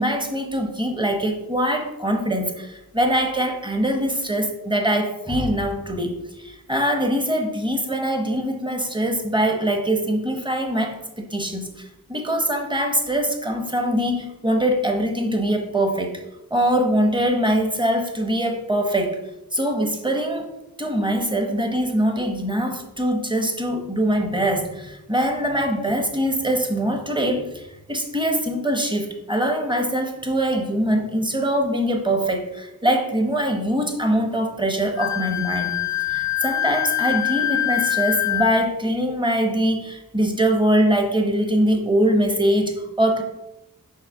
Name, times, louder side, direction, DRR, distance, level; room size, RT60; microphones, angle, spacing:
voice 1, 0.0-16.2 16.5-19.2 19.5-20.5 20.8-43.2, right 1 dB, 10° right, 4 dB, 1.0 m, -23 dB
Wind instrument woodwind instrument, 35.0-38.7, left 14 dB, 50° left, 0.5 m, -24 dB
6.5 x 3.1 x 5.4 m, 0.93 s
wide cardioid pair, 90°, 38 cm